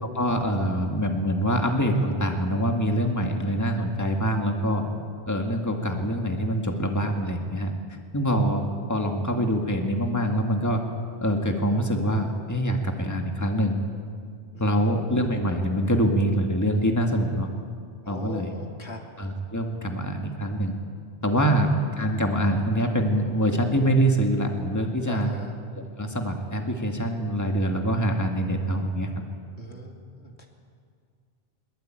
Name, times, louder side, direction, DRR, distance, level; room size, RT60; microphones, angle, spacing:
voice 1, 0.0-4.8 5.3-7.7 8.1-10.8 11.2-13.8 14.6-17.5 18.1-18.5 19.2-20.7 21.2-25.3 25.7-29.1, equal, 15° left, 3 dB, 2.1 m, -25 dB
voice 2, 18.0-19.0 21.4-21.5 25.1-25.5 29.6-30.5, left 1 dB, 80° left, 2 dB, 3.0 m, -40 dB
22.0 x 21.5 x 9.1 m, 2.1 s
omnidirectional pair, 1.1 m